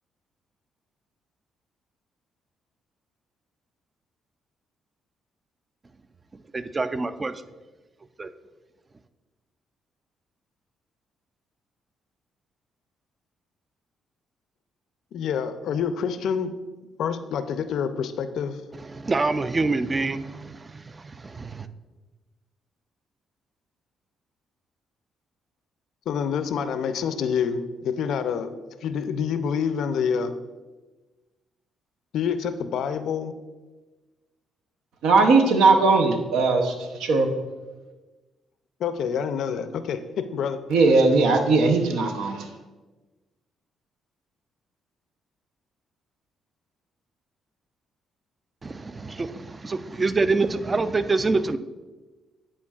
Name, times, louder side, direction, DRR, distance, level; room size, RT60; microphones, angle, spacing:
voice 1, 6.5-7.4 8.2-8.3 18.7-21.7 48.6-51.6, right 3 dB, 25° right, 0.3 m, -26 dB
voice 2, 15.1-16.5 17.0-18.6 26.1-28.5 28.8-30.3 32.1-33.3 38.8-40.6, left 7 dB, 75° left, 0.4 m, -27 dB
voice 3, 35.0-36.7 37.0-37.3 40.7-42.5, right 3 dB, 85° right, 0.7 m, -19 dB
9.8 x 4.4 x 2.4 m
cardioid pair, 90°, 0 cm